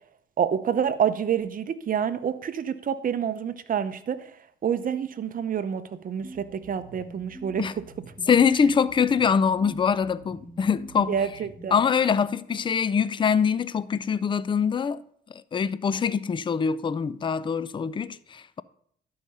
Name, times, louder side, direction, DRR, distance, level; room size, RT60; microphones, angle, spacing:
voice 1, 0.4-4.2 4.6-7.6 11.1-11.8, right 8 dB, 45° right, 0.7 m, -27 dB
sound 1, 6.2-11.9, right 2 dB, 10° left, 2.4 m, -46 dB
voice 2, 8.3-11.2 11.7-15.0 15.3-18.6, left 6 dB, 25° left, 0.4 m, -24 dB
11.5 x 4.8 x 5.4 m
cardioid pair, 90°, 20 cm